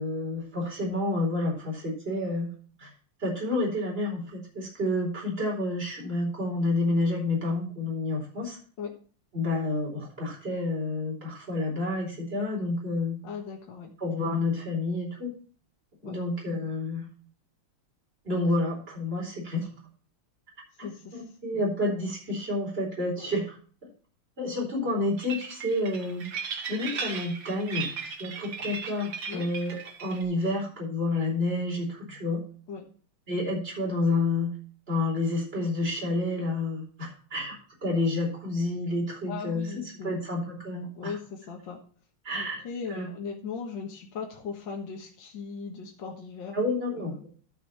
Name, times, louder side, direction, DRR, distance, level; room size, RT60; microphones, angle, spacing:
voice 1, 0.0-2.5 2.8-2.9 3.2-8.6 9.3-13.2 14.0-15.3 16.0-17.1 18.2-19.7 20.8-23.5 24.4-27.9 28.2-32.4 33.3-34.5 34.9-39.7 40.0-41.1 42.2-42.6 42.9-43.1 46.5-47.3, left 2 dB, 25° right, -2 dB, 4.5 m, -29 dB
voice 2, 13.2-13.9 16.0-16.2 20.8-21.2 23.2-23.3 29.3-29.5 32.7-32.8 39.3-40.2 41.0-41.8 42.3-46.6 46.9-47.2, left 5 dB, 60° left, 1 dB, 2.2 m, -38 dB
sound 1, 25.2-30.2, right 6 dB, 60° right, 2.3 m, -37 dB
12.5 x 6.6 x 4.2 m, 0.41 s
omnidirectional pair, 2.3 m